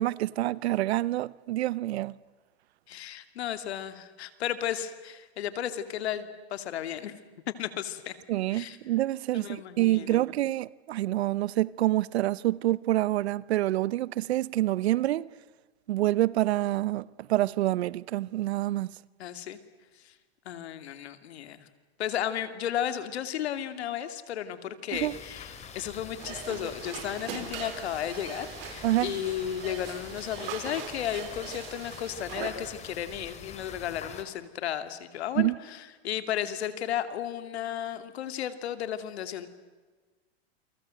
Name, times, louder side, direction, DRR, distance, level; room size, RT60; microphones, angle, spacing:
voice 1, 0.0-2.2 8.3-15.3 15.9-18.9 24.9-25.2 28.8-29.1 35.4-35.5, right 15 dB, 80° right, 0.9 m, -27 dB
voice 2, 2.9-7.1 7.6-8.1 8.5-8.8 9.3-10.3 19.2-19.6 20.0-20.1 20.4-21.7 22.0-39.5, left 10 dB, 80° left, 2.7 m, -34 dB
sound 1, 24.9-34.2, left 6 dB, 20° left, 3.1 m, -45 dB
sound 2, 26.2-32.5, right 9 dB, 65° right, 4.7 m, -41 dB
29.0 x 24.5 x 7.8 m
supercardioid pair, 145°, 32 cm